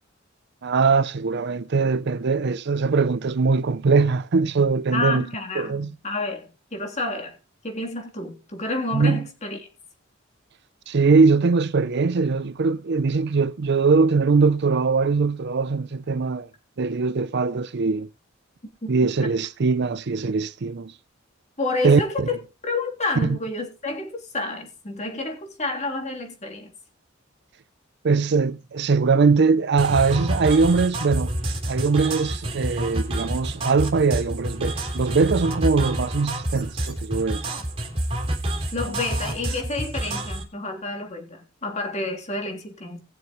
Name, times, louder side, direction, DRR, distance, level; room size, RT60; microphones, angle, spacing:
voice 1, 0.6-5.2 5.6-5.9 8.9-9.2 10.9-16.5 16.8-18.1 18.9-20.9 21.8-22.3 23.2-23.4 28.0-31.4 31.7-37.4, right 4 dB, 55° right, 0.5 m, -21 dB
voice 2, 4.9-7.4 7.6-9.6 18.8-18.9 19.2-19.3 21.6-22.4 22.6-26.7 38.7-43.0, left 2 dB, 35° left, 3.3 m, -29 dB
sound 1, 29.8-40.4, right 1 dB, 30° right, 3.5 m, -28 dB
20.5 x 7.1 x 3.1 m
head